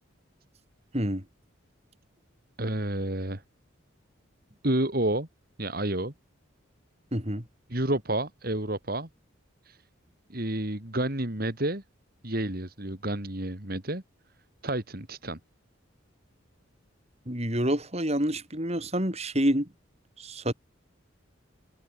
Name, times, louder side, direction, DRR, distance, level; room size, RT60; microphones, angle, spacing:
voice 1, 0.9-1.2 7.1-7.5 17.3-19.7 20.2-20.5, equal, 30° right, 5.4 m, -28 dB
voice 2, 2.6-3.4 4.6-5.3 5.6-6.1 7.7-9.1 9.6-9.8 10.3-11.8 12.2-14.0 14.6-15.4, right 1 dB, 50° right, 2.8 m, -30 dB
head